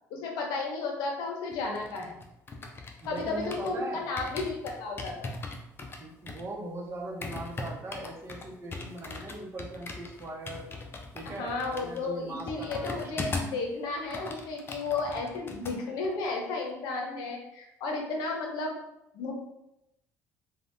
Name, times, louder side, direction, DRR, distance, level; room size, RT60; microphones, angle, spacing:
voice 1, 0.1-2.2 3.1-5.3 11.2-18.7 19.1-19.3, left 3 dB, 75° left, 1 dB, 0.7 m, -33 dB
sound 1, 1.5-3.8 4.2-13.6 13.9-15.8 16.0-16.3, left 3 dB, 30° left, 0.5 m, -40 dB
voice 2, 3.0-4.1 6.0-10.7 11.1-13.3, right 2 dB, 35° right, 0 dB, 0.8 m, -40 dB
3.3 x 2.2 x 2.6 m, 0.85 s
supercardioid pair, 85°, 7 cm